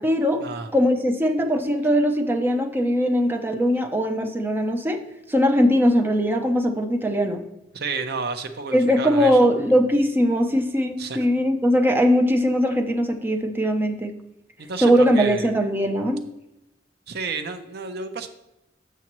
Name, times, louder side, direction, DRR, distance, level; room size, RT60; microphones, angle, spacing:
voice 1, 0.0-0.4 0.7-5.0 5.3-7.4 8.7-14.1 14.8-16.2, equal, 10° right, 4 dB, 0.6 m, -20 dB
voice 2, 7.7-9.4 11.0-11.2 14.6-15.5 17.1-18.3, right 4 dB, 60° right, 7 dB, 0.6 m, -31 dB
7.3 x 6.9 x 3.0 m, 0.91 s
head